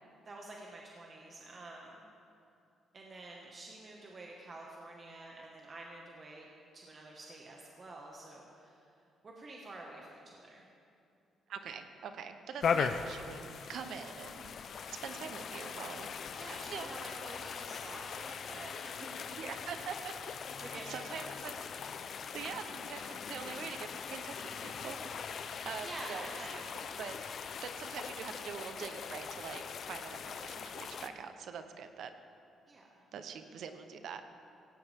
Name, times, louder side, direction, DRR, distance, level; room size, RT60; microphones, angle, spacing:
voice 1, 0.2-2.0 2.9-6.5 6.7-8.9 9.2-10.7 16.4-19.1 19.5-19.6 20.6-21.5 25.8-26.6 32.7-32.9, right 2 dB, 40° right, -2 dB, 1.8 m, -49 dB
voice 2, 11.5-14.5 14.9-16.1 16.7-17.0 19.4-20.3 20.7-21.6 22.3-25.0 25.6-26.3 26.5-27.1 27.6-32.1 33.1-34.2, right 7 dB, 70° right, 8 dB, 1.0 m, -44 dB
sound 1, 12.6-31.1, left 6 dB, 60° left, 0.7 m, -40 dB
16.5 x 16.5 x 3.7 m, 2.6 s
cardioid pair, 90°, 0 cm